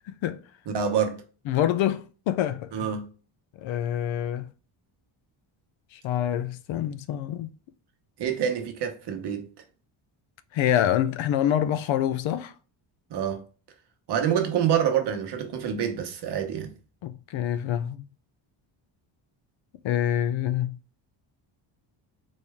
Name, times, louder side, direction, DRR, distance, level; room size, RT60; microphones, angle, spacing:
voice 1, 0.7-1.2 2.7-3.1 8.2-9.5 13.1-13.4 14.1-16.7, right 8 dB, 55° right, 1.0 m, -26 dB
voice 2, 1.5-2.9 3.6-4.4 5.9-7.5 10.5-12.5 17.0-18.1 19.8-20.8, left 11 dB, 70° left, 0.6 m, -26 dB
4.3 x 3.2 x 3.5 m
cardioid pair, 165°, 50 cm